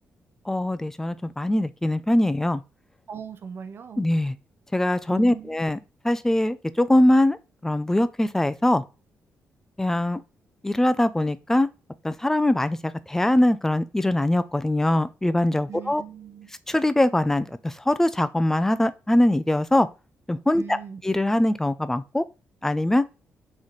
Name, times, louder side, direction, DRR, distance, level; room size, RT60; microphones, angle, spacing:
voice 1, 0.5-2.6 4.0-4.3 4.7-5.8 6.0-7.4 7.6-8.8 9.8-10.2 10.6-11.7 12.0-16.0 16.7-19.9 20.3-20.8 21.0-22.2 22.6-23.0, left 1 dB, 10° left, 0.4 m, -22 dB
voice 2, 3.1-4.0 5.1-5.7 15.7-16.5 20.6-21.0, right 6 dB, 50° right, 0.6 m, -39 dB
4.1 x 3.1 x 3.9 m
cardioid pair, 85°, 5 cm